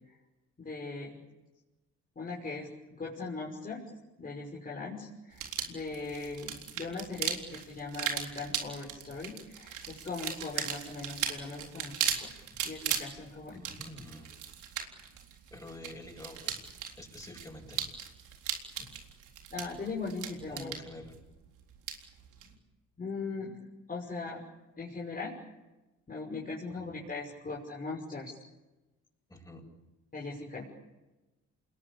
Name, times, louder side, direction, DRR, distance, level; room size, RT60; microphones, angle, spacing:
voice 1, 0.6-1.2 2.2-3.8 4.2-13.6 19.5-20.7 23.0-23.6 23.9-24.4 24.8-25.3 26.1-28.4 30.1-30.6, left 3 dB, 30° left, -3 dB, 6.0 m, -39 dB
sound 1, 5.3-22.5, right 8 dB, 85° right, 4.0 m, -38 dB
voice 2, 13.5-14.4 15.5-16.6 16.9-17.9 18.8-19.0 20.5-21.2 26.8-27.0 27.5-27.6 29.3-29.6, left 1 dB, 15° left, -1 dB, 7.5 m, -47 dB
28.0 x 21.5 x 8.7 m, 1.1 s
cardioid pair, 90°, 30 cm